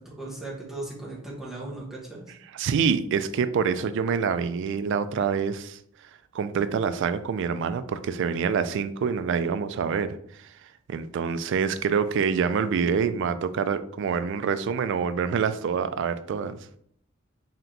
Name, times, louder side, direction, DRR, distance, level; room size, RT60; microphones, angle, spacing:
voice 1, 0.0-2.2, right 2 dB, ahead, -6 dB, 1.2 m, -37 dB
voice 2, 2.5-5.8 6.3-10.5 10.9-16.6, right 6 dB, 65° right, 12 dB, 0.3 m, -26 dB
3.3 x 2.9 x 3.9 m, 0.66 s
head